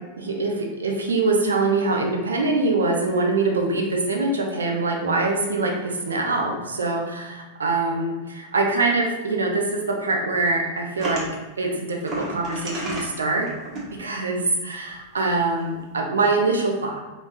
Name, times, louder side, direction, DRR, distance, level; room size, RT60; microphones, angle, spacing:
voice 1, 0.2-11.3 11.6-13.5 13.9-17.0, right 3 dB, 70° right, 1 dB, 0.7 m, -24 dB
sound 1, 11.0-11.3 12.0-13.1 13.5-13.8 14.9-15.0 15.2-15.4, right 1 dB, 35° right, 1.3 m, -31 dB
5.1 x 3.2 x 2.6 m, 1.2 s
figure-of-eight pair, 90°, 0 cm